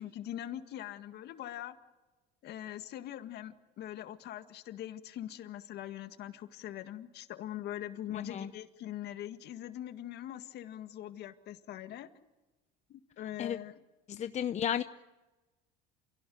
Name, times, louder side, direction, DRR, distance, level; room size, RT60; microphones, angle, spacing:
voice 1, 0.0-1.7 2.4-12.1 12.9-13.8, left 12 dB, 55° left, 9 dB, 1.9 m, -42 dB
voice 2, 8.1-8.5 13.4-13.6 14.1-14.8, left 9 dB, 35° left, 11 dB, 0.8 m, -33 dB
28.0 x 17.0 x 9.3 m, 1.1 s
supercardioid pair, 100°, 20 cm